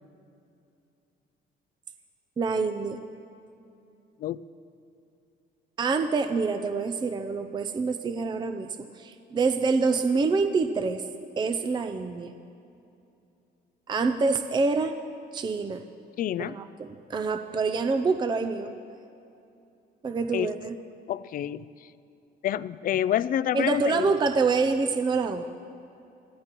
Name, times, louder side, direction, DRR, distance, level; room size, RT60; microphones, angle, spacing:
voice 1, 2.4-3.0 5.8-11.0 11.4-12.3 13.9-15.0 15.3-15.9 16.4-18.7 20.0-20.8 23.5-25.4, right 4 dB, 25° right, 7 dB, 0.5 m, -26 dB
voice 2, 16.2-16.6 20.3-20.5 21.1-21.7 22.4-24.2, left 11 dB, 50° left, 17 dB, 0.4 m, -28 dB
25.0 x 15.0 x 3.0 m, 2.7 s
cardioid pair, 135°, 19 cm